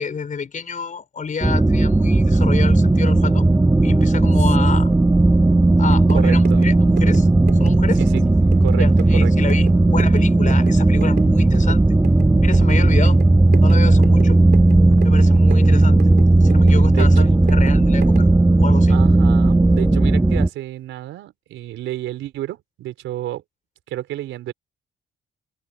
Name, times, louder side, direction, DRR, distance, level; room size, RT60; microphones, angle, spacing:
voice 1, 0.0-3.5 3.8-4.9 5.8-7.3 7.6-8.0 8.7-11.8 12.4-13.2 13.6-14.4 15.0-18.3 18.6-19.0, left 5 dB, 40° left, 4.3 m, -29 dB
sound 1, 1.4-20.5, right 2 dB, 10° right, 1.5 m, -15 dB
sound 2, 5.8-18.4, right 8 dB, 55° right, 3.1 m, -35 dB
voice 2, 6.1-6.7 8.0-8.2 8.6-9.5 16.9-17.1 18.9-23.4 23.9-24.5, right 13 dB, 85° right, 4.5 m, -30 dB
Brass instrument, 13.8-20.2, left 4 dB, 25° left, 4.3 m, -38 dB
cardioid pair, 90°, 20 cm